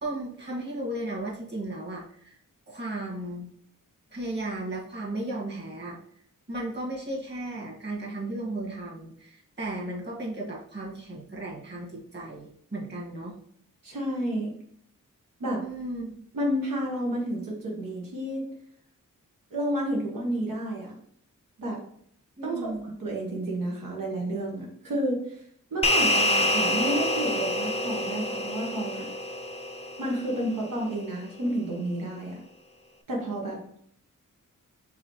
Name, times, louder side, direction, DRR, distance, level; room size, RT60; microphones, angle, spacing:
voice 1, 0.0-2.4 2.7-3.5 4.1-6.0 6.5-13.4 15.6-16.2 22.4-22.8, right 1 dB, 35° right, -4 dB, 2.0 m, -35 dB
voice 2, 13.8-14.5 15.4-15.6 16.3-18.4 19.5-21.0 21.6-21.8 22.4-25.4 25.7-29.1 30.0-32.4 33.1-33.6, right 1 dB, 85° right, -3 dB, 1.2 m, -30 dB
sound 1, 25.8-30.5, left 1 dB, 20° left, 0.5 m, -27 dB
4.7 x 3.4 x 3.1 m, 0.65 s
wide cardioid pair, 70°, 32 cm